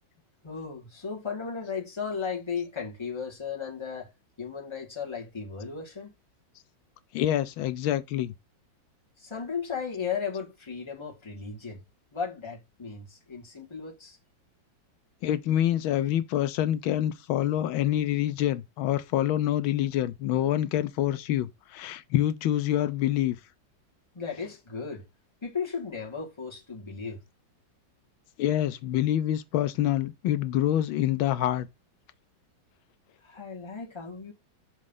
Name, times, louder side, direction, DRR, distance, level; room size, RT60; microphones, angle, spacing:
voice 1, 0.4-4.1 4.4-6.1 9.2-11.8 12.1-14.2 24.1-25.0 25.4-27.2 33.2-34.3, left 6 dB, 15° left, 1.6 m, -35 dB
voice 2, 7.1-8.3 15.2-23.4 28.4-31.7, left 12 dB, 85° left, 1.4 m, -26 dB
6.4 x 3.1 x 5.4 m
omnidirectional pair, 2.2 m